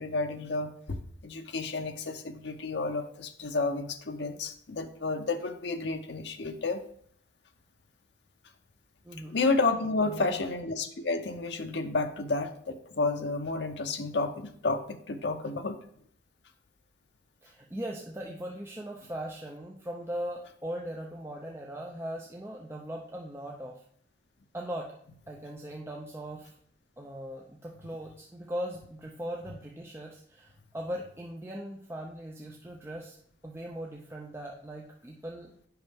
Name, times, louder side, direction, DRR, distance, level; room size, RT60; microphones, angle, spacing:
voice 1, 0.0-6.8 9.3-15.8, left 3 dB, 65° left, 6 dB, 0.7 m, -31 dB
voice 2, 9.0-9.3 10.0-10.4 17.4-23.8 24.5-24.9 25.3-26.5 27.0-33.2 33.4-35.5, equal, 15° right, -1 dB, 0.6 m, -39 dB
8.0 x 5.6 x 3.5 m, 0.63 s
head